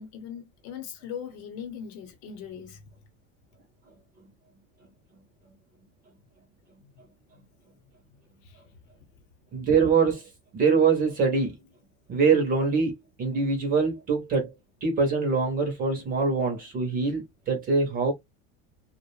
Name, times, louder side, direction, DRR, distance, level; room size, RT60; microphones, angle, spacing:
voice 1, 0.0-2.8 6.8-6.9 8.4-8.6, left 8 dB, 55° left, 0.8 m, -40 dB
voice 2, 9.5-11.6 12.1-14.5 14.8-18.1, right 4 dB, 25° right, 0.5 m, -24 dB
2.3 x 2.1 x 3.0 m
supercardioid pair, 165°, 39 cm